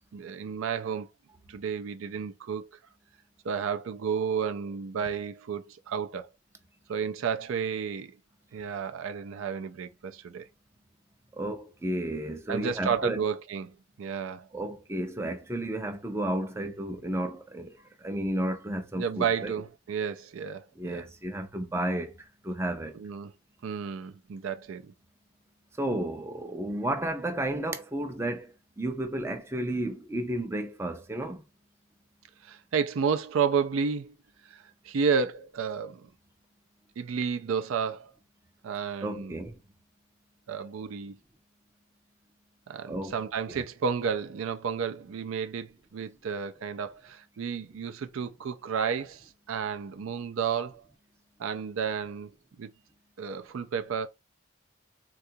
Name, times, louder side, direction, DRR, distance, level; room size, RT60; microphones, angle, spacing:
voice 1, 0.1-1.1 1.5-2.7 3.4-6.3 6.9-8.2 8.5-10.5 12.5-14.5 19.0-21.1 22.9-23.3 23.6-24.9 32.4-34.1 34.4-36.1 37.0-38.1 38.6-39.4 40.5-41.2 42.7-50.9 51.4-52.7 53.2-54.1, right 6 dB, 75° right, 0.4 m, -32 dB
voice 2, 11.3-13.2 14.5-17.7 18.0-19.5 20.8-22.1 22.4-22.9 25.8-31.4 39.0-39.6 42.9-43.2, right 1 dB, 15° right, 0.4 m, -32 dB
3.7 x 2.3 x 2.6 m
head